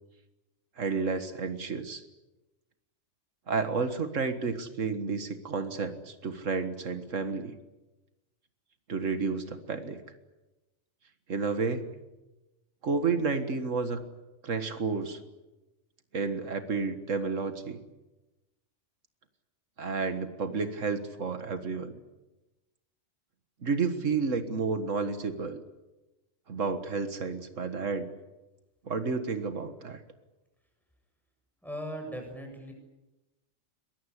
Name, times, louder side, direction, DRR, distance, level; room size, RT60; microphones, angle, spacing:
voice 1, 0.8-2.0 3.5-7.6 8.9-10.0 11.3-11.9 12.8-14.0 14.4-15.2 16.1-17.8 19.8-22.0 23.6-25.6 26.5-28.1 28.9-30.0, right 4 dB, 85° right, 9 dB, 2.0 m, -31 dB
voice 2, 31.6-32.7, equal, ahead, 2 dB, 7.6 m, -38 dB
23.0 x 21.5 x 10.0 m, 1.1 s
omnidirectional pair, 1.3 m